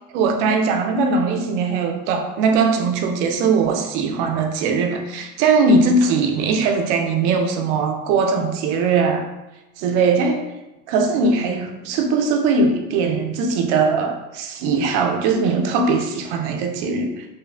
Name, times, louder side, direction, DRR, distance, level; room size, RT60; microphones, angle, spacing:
voice 1, 0.1-9.2 9.8-10.4 10.9-17.3, right 4 dB, 70° right, 4 dB, 0.5 m, -20 dB
3.1 x 2.1 x 2.4 m, 1.0 s
supercardioid pair, 115°, 36 cm